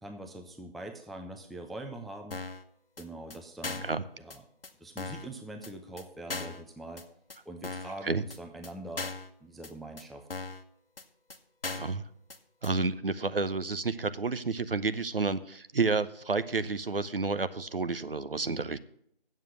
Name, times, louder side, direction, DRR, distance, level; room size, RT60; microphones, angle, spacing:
voice 1, 0.0-2.4 3.0-3.8 4.2-4.4 4.8-7.1 7.5-9.1 9.4-10.3, right 1 dB, ahead, 5 dB, 0.4 m, -43 dB
sound 1, 2.3-2.6 3.0-3.1 3.3-3.4 3.6-4.0 4.3-4.4 4.6-4.7 5.0-5.3 5.6-5.7 6.0-6.1 6.3-6.6 7.0-7.1 7.3-7.4 7.6-8.0 8.3-8.4 8.6-8.7 9.0-9.3 9.6-9.7 10.0-10.1 10.3-10.6 11.0-11.1 11.3-11.4 11.6-12.0 12.3-12.4 12.6-12.7, left 3 dB, 70° left, 1.1 m, -38 dB
voice 2, 11.7-12.0 12.6-18.8, right 4 dB, 65° right, 13 dB, 0.7 m, -30 dB
8.2 x 7.4 x 6.6 m, 0.67 s
figure-of-eight pair, 170°, 30 cm